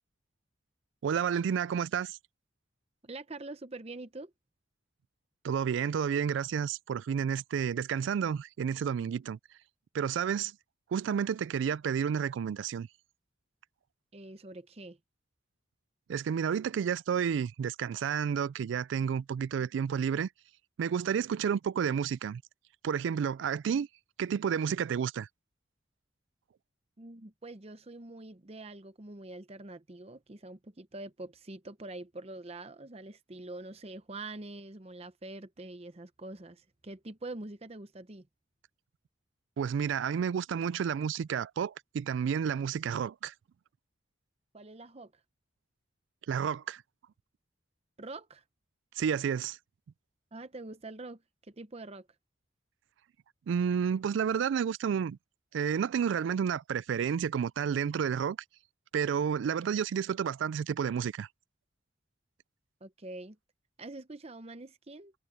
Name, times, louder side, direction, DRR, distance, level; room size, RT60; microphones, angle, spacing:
voice 1, 1.0-2.2 5.4-9.4 9.9-10.5 10.9-12.9 16.1-20.3 20.8-22.4 22.8-23.9 24.2-25.3 39.6-43.3 46.3-46.8 49.0-49.6 53.5-55.2 55.5-58.4 58.9-61.3, right 7 dB, 70° right, 0.3 m, -30 dB
voice 2, 3.0-4.3 14.1-15.0 27.0-38.3 44.5-45.1 48.0-48.4 50.3-52.1 62.8-63.4 63.8-65.1, right 2 dB, 30° right, 0.8 m, -45 dB
head